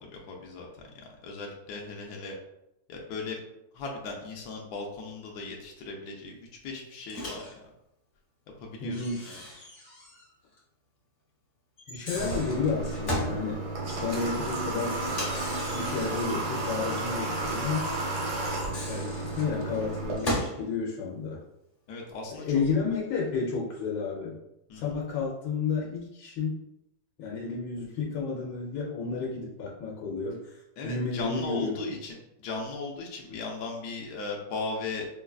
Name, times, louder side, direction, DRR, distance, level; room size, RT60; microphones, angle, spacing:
voice 1, 0.0-2.4 2.9-3.4 3.7-7.7 8.6-9.4 21.9-22.6 24.7-25.0 30.8-35.1, left 3 dB, 70° left, 0 dB, 1.1 m, -37 dB
Microwave oven, 7.1-7.5 8.9-10.3 10.6-10.7 11.8-13.4 15.0-16.4 18.4-20.6, equal, 50° left, 0.4 m, -36 dB
voice 2, 8.8-9.3 11.9-13.6 14.0-15.0 15.7-17.9 18.8-21.4 22.3-24.4 24.7-26.6 27.2-31.9, left 4 dB, 85° left, -3 dB, 1.3 m, -31 dB
Water / Water tap faucet, 12.2-20.2, right 2 dB, 85° right, 1.6 m, -32 dB
5.1 x 2.3 x 2.3 m, 0.86 s
omnidirectional pair, 1.9 m